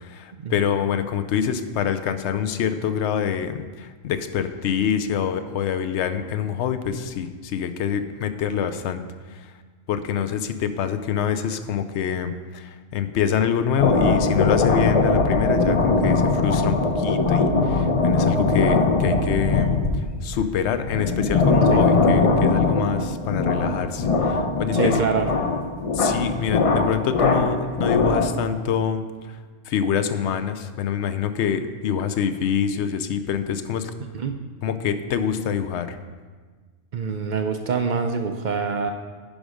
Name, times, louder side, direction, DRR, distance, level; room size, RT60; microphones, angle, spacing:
voice 1, 0.0-9.0 9.9-19.7 20.2-25.0 25.9-29.0 29.7-33.9 34.6-36.0, left 8 dB, 65° left, 11 dB, 0.8 m, -25 dB
sound 1, 13.8-28.5, left 3 dB, 45° left, 0.5 m, -21 dB
voice 2, 24.7-25.3 34.1-34.4 36.9-38.9, right 5 dB, 55° right, 6 dB, 0.5 m, -25 dB
10.5 x 5.2 x 4.9 m, 1.5 s
omnidirectional pair, 1.3 m